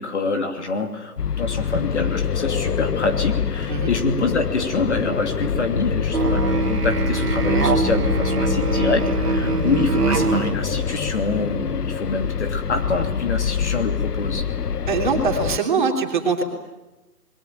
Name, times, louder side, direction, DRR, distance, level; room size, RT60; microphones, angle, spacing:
voice 1, 0.0-14.5, left 3 dB, 45° left, 5 dB, 2.9 m, -26 dB
sound 1, 1.2-15.6, left 7 dB, 80° left, 1.0 m, -25 dB
Musical instrument, 6.1-10.6, right 3 dB, 80° right, 2.4 m, -22 dB
Wild animals, 9.1-13.4, right 2 dB, 10° left, 7.5 m, -39 dB
voice 2, 14.9-16.4, right 5 dB, 30° right, 2 dB, 3.3 m, -22 dB
27.0 x 22.0 x 9.0 m, 1.1 s
hypercardioid pair, 165°, 46 cm